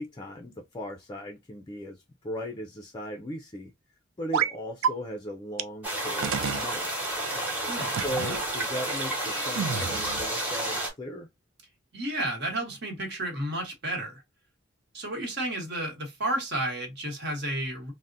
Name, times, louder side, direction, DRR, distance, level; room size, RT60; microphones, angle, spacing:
voice 1, 0.0-3.7 4.2-6.9 7.8-11.3, equal, 20° left, 0.4 m, -37 dB
sound 1, 4.3-4.5 4.8-4.9 5.6-5.7 6.2-6.7 7.9-8.4 9.6-10.3, right 7 dB, 80° right, 0.4 m, -29 dB
sound 2, 5.8-10.9, right 1 dB, 10° right, 1.0 m, -31 dB
voice 2, 11.9-14.2 14.9-17.9, right 1 dB, 60° right, 1.2 m, -32 dB
3.5 x 2.1 x 2.5 m
head